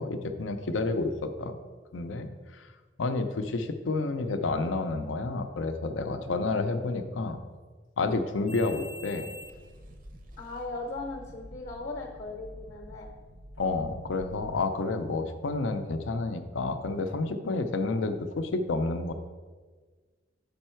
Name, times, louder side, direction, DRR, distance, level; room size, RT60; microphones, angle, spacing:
voice 1, 0.0-1.6 1.9-2.7 3.0-7.4 8.0-9.3 13.6-19.1, left 3 dB, 90° left, 8 dB, 0.5 m, -30 dB
sound 1, 8.5-14.6, equal, 45° right, 0.6 m, -47 dB
voice 2, 10.4-13.1, left 3 dB, 50° left, 1 dB, 0.7 m, -39 dB
5.4 x 5.3 x 4.4 m, 1.4 s
head